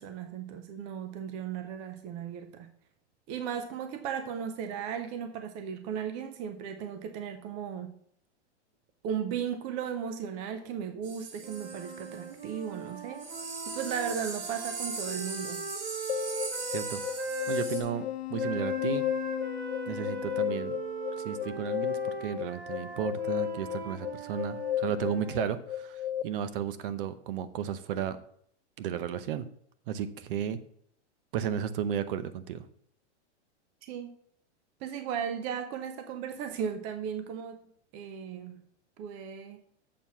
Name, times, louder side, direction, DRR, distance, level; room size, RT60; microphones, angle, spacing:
voice 1, 0.0-2.7 3.3-7.9 9.0-13.2 13.7-15.7 33.8-34.1 34.8-37.7 37.9-38.6 39.0-39.6, right 8 dB, 20° right, 8 dB, 0.4 m, -36 dB
sound 1, 11.0-12.5 12.9-13.0 13.2-17.8, right 4 dB, 90° right, 3.3 m, -39 dB
sound 2, 11.4-17.7 18.4-25.5, right 3 dB, 65° right, 2.3 m, -39 dB
sound 3, 16.1-26.2, left 11 dB, 65° left, 0.6 m, -34 dB
voice 2, 16.7-17.0 17.5-19.1 19.9-20.8 21.2-28.2 28.8-29.5 29.9-30.6 31.3-32.7, right 9 dB, 50° right, 13 dB, 0.8 m, -34 dB
7.4 x 4.6 x 7.1 m, 0.64 s
supercardioid pair, 155°, 35 cm